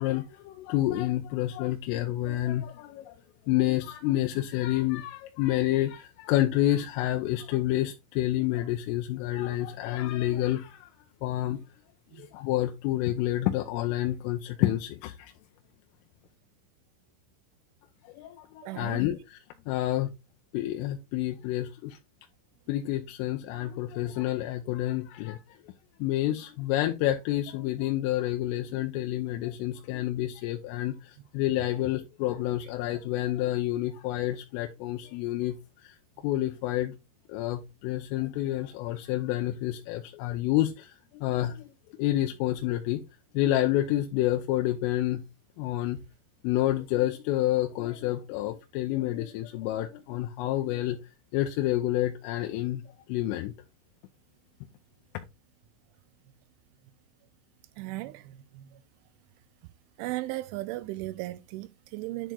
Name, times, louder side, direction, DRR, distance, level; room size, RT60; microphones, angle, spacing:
voice 1, 0.0-3.2 3.5-10.9 11.2-11.6 12.2-15.3 18.1-19.4 19.7-20.1 20.5-22.0 22.7-25.4 26.0-36.0 36.2-37.0 37.3-41.6 42.0-43.0 43.4-45.2 45.6-46.0 46.4-51.0 51.3-52.8 53.1-53.5, left 14 dB, 85° left, 3.3 m, -29 dB
voice 2, 18.6-19.0 57.8-58.2 58.6-58.7 60.0-62.3, right 18 dB, 85° right, 3.0 m, -36 dB
10.5 x 4.4 x 3.8 m
omnidirectional pair, 5.7 m